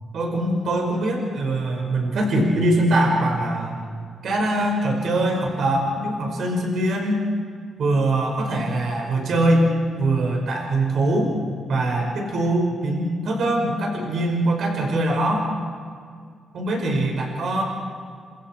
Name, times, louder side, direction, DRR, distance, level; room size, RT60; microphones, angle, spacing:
voice 1, 0.1-3.8 4.2-7.3 7.8-9.7 10.0-11.4 11.7-15.5 16.5-17.6, right 1 dB, 65° right, 1 dB, 5.0 m, -22 dB
29.0 x 26.5 x 4.5 m, 2.1 s
cardioid pair, 115°, 0 cm